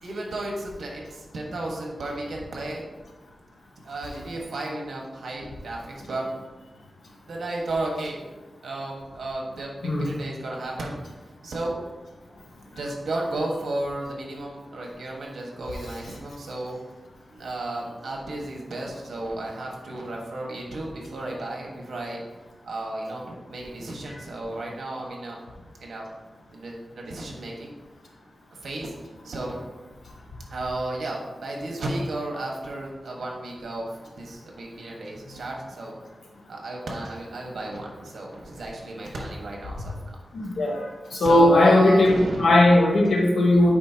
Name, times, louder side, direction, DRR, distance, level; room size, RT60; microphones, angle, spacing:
voice 1, 0.0-2.9 3.8-6.3 7.3-8.2 8.6-11.0 11.4-11.7 12.7-16.8 17.3-22.2 22.6-25.4 25.8-26.0 26.5-27.7 28.6-28.9 29.2-29.7 30.5-33.9 34.2-36.0 36.5-40.2 41.1-42.5, right 2 dB, 85° right, -1 dB, 1.5 m, -33 dB
voice 2, 40.3-40.9 41.1-43.7, left 1 dB, 90° left, -2 dB, 1.6 m, -18 dB
8.7 x 5.3 x 2.9 m, 1.2 s
wide cardioid pair, 140°, 0 cm